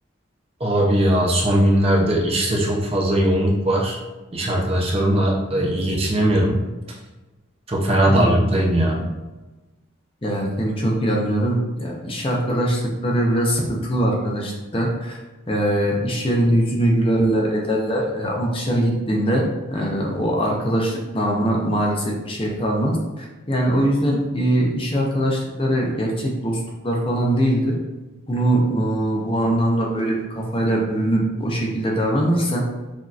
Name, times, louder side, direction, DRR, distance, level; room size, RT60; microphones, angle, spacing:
voice 1, 0.6-4.0 4.3-7.0 7.7-9.1, right 1 dB, 30° right, -2 dB, 0.6 m, -19 dB
voice 2, 8.1-8.5 10.2-15.2 15.5-27.8 28.3-32.6, right 1 dB, 25° left, -1 dB, 0.7 m, -22 dB
6.2 x 2.8 x 2.4 m, 1.1 s
head